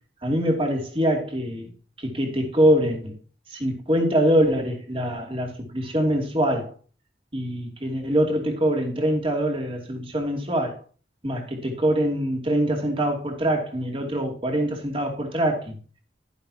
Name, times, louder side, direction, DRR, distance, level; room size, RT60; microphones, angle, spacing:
voice 1, 0.2-1.7 2.0-3.2 3.5-6.7 7.3-10.8 11.2-15.8, equal, 30° right, 2.7 m, -24 dB
11.5 x 11.5 x 2.9 m
head